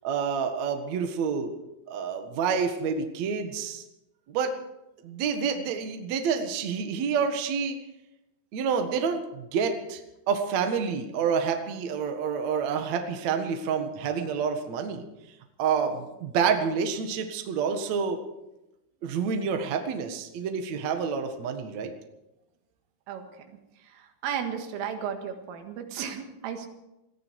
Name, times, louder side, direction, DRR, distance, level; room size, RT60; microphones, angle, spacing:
voice 1, 0.0-1.5 1.9-3.8 4.3-4.5 5.0-7.8 8.5-10.0 10.3-15.1 15.6-18.2 19.0-21.9, right 6 dB, 65° right, 5 dB, 1.8 m, -28 dB
voice 2, 23.1-26.7, right 8 dB, 90° right, 5 dB, 4.3 m, -35 dB
20.0 x 15.0 x 4.7 m, 0.93 s
omnidirectional pair, 5.7 m